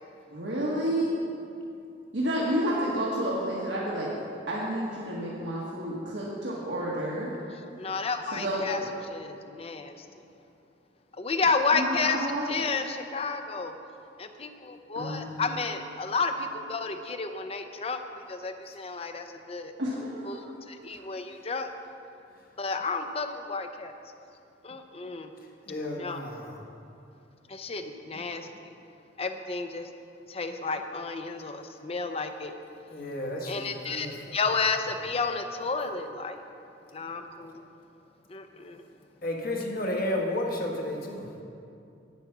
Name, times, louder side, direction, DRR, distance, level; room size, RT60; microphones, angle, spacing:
voice 1, 0.3-1.1 2.1-4.1 4.5-7.3 8.3-8.6 11.7-12.6 14.9-15.2 19.8-20.5 20.9-21.0, right 1 dB, 80° right, -6 dB, 1.6 m, -30 dB
voice 2, 7.8-10.1 11.2-13.8 14.2-18.0 18.3-19.7 20.2-21.7 22.6-23.9 24.6-25.3 25.9-26.2 27.5-28.7 29.2-29.9 30.3-32.5 33.5-34.1 34.3-36.4 36.9-37.7 38.3-38.8, left 4 dB, 35° left, 7 dB, 0.6 m, -31 dB
voice 3, 25.7-26.6 32.9-34.4 39.2-41.4, left 1 dB, 50° left, 0 dB, 1.4 m, -32 dB
9.3 x 8.2 x 6.0 m, 2.6 s
head